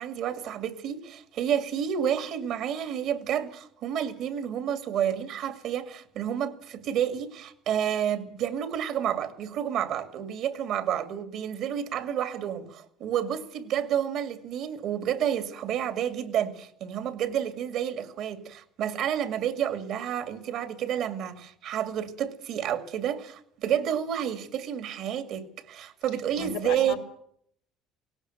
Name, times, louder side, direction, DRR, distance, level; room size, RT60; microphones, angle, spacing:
voice 1, 0.0-26.9, right 9 dB, 65° right, 2.2 m, -30 dB
voice 2, 26.4-27.0, left 7 dB, 90° left, 4.7 m, -35 dB
18.0 x 16.5 x 9.2 m
supercardioid pair, 90°, 0 cm